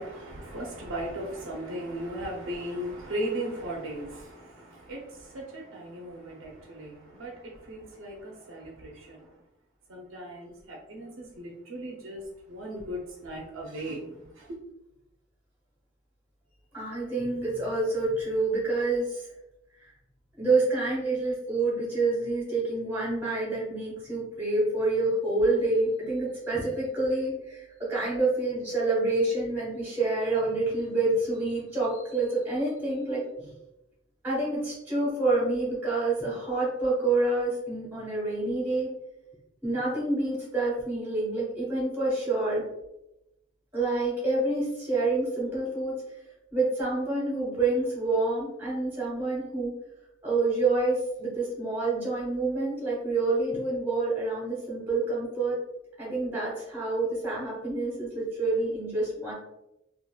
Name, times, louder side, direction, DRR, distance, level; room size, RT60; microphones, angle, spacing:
voice 1, 0.0-9.3 9.9-12.2 12.5-14.6, right 1 dB, 70° right, 0.6 m, -37 dB
voice 2, 16.7-19.2 20.4-33.5 34.2-38.9 39.6-42.6 43.7-45.9 46.5-49.7 50.2-55.6 56.0-59.3, right 2 dB, 10° right, 1.3 m, -27 dB
2.9 x 2.5 x 2.2 m
head